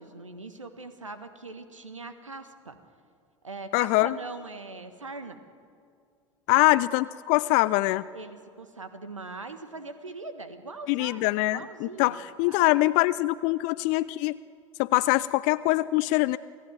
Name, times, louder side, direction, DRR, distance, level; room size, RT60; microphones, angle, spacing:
voice 1, 0.0-2.8 3.4-5.4 6.5-6.9 8.1-11.3 11.5-12.2 12.5-12.7, right 3 dB, 85° right, 10 dB, 1.6 m, -41 dB
voice 2, 3.7-4.2 6.5-8.0 10.9-14.4 14.8-16.4, left 19 dB, 50° left, 17 dB, 0.5 m, -23 dB
28.0 x 16.5 x 9.1 m, 2.4 s
figure-of-eight pair, 70°, 16 cm